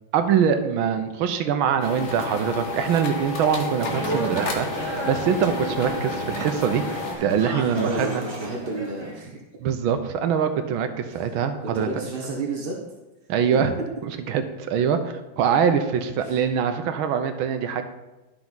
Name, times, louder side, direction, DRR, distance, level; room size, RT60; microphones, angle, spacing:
voice 1, 0.1-6.8 7.2-8.2 9.6-11.9 13.3-13.7 14.3-17.8, right 7 dB, 80° right, 8 dB, 1.5 m, -23 dB
sound 1, 1.8-7.1, left 4 dB, 40° left, 1.2 m, -32 dB
sound 2, 3.8-9.2, right 1 dB, 20° right, 0.9 m, -33 dB
voice 2, 7.7-9.4 11.1-11.2 11.6-12.8 16.2-16.4, right 2 dB, 45° right, -1 dB, 0.7 m, -31 dB
11.5 x 5.9 x 3.9 m, 1.1 s
omnidirectional pair, 2.3 m